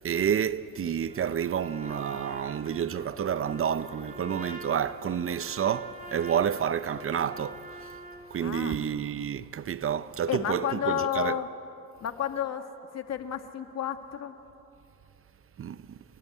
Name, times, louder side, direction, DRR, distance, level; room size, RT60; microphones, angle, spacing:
voice 1, 0.0-7.8 8.3-11.4 15.6-16.0, right 8 dB, 45° right, 0.8 m, -29 dB
Trumpet, 1.1-8.3, right 1 dB, 25° right, 3.6 m, -45 dB
voice 2, 8.4-8.8 10.3-11.5 12.0-12.7 12.9-14.3, left 10 dB, 60° left, 1.8 m, -31 dB
28.0 x 21.0 x 9.5 m
cardioid pair, 90°, 30 cm